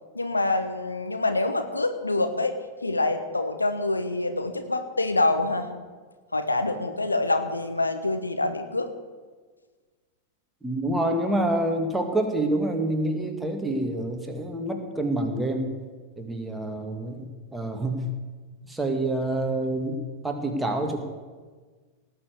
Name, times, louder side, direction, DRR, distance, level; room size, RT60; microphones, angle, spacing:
voice 1, 0.1-2.6 2.8-5.7 6.3-8.9, left 2 dB, 80° left, 7 dB, 1.2 m, -26 dB
voice 2, 10.6-15.8 16.2-18.1 18.7-21.0, right 1 dB, 5° right, 3 dB, 2.1 m, -27 dB
18.5 x 7.0 x 8.1 m, 1.4 s
figure-of-eight pair, 90°, 0 cm